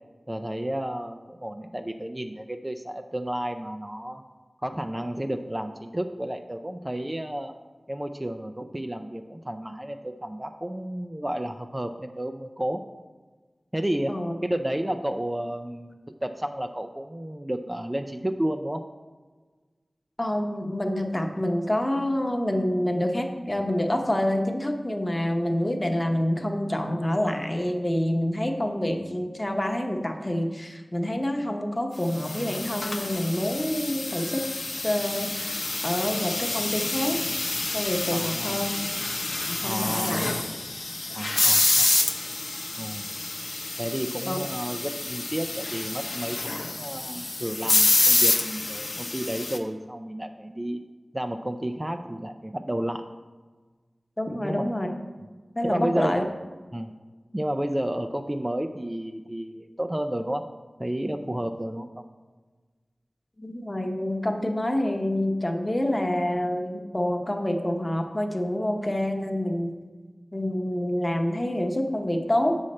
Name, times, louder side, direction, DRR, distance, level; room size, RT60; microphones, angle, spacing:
voice 1, 0.3-4.2 4.6-7.5 7.9-12.8 13.7-18.8 38.1-38.7 39.6-40.2 41.1-41.9 42.8-43.1 43.8-50.8 51.1-53.0 54.3-54.7 55.6-56.3 56.7-56.9 57.3-60.4 60.8-62.0, right 1 dB, 20° right, 5 dB, 0.4 m, -31 dB
voice 2, 20.2-34.4 34.8-37.2 37.7-38.8 39.5-40.3 44.3-44.4 54.2-54.9 55.6-56.2 63.4-69.7 70.3-72.6, left 1 dB, 25° left, 3 dB, 0.8 m, -27 dB
sound 1, 32.1-49.6, left 2 dB, 65° left, 0.7 m, -27 dB
7.5 x 6.4 x 4.2 m, 1.4 s
wide cardioid pair, 70°, 0 cm